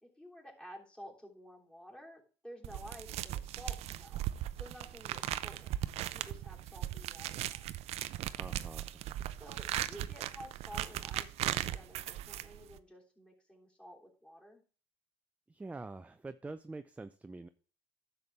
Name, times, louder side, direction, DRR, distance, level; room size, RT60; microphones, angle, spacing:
voice 1, 0.0-4.2 4.5-5.8 6.1-7.7 9.4-14.6, equal, 10° left, -2 dB, 3.1 m, -52 dB
sound 1, 2.6-12.8, right 13 dB, 60° right, 0.5 m, -38 dB
voice 2, 8.4-9.0 15.5-17.5, right 3 dB, 10° right, 11 dB, 0.5 m, -45 dB
10.5 x 7.1 x 3.4 m, 0.38 s
supercardioid pair, 80°, 12 cm